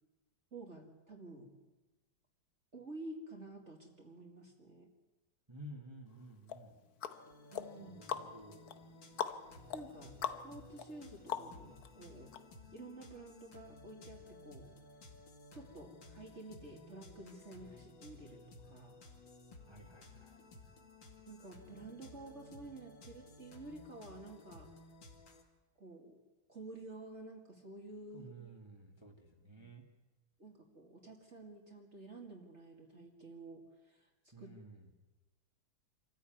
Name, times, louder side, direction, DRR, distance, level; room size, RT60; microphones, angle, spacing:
voice 1, 0.5-1.6 2.7-4.9 7.5-8.0 9.7-12.3 12.7-14.7 15.5-19.0 21.3-24.7 25.8-26.2 26.5-28.3 30.4-34.1 34.4-34.5, right 2 dB, 35° right, 1 dB, 2.6 m, -51 dB
voice 2, 5.5-6.8 7.8-8.8 19.7-20.4 28.1-29.8 34.3-34.9, right 1 dB, 15° right, 1 dB, 2.2 m, -53 dB
sound 1, 6.5-11.9 12.3-12.4, left 8 dB, 60° left, 1.4 m, -43 dB
sound 2, 7.1-25.4, left 2 dB, 80° left, 3.1 m, -57 dB
26.0 x 14.5 x 9.3 m, 1.1 s
omnidirectional pair, 2.0 m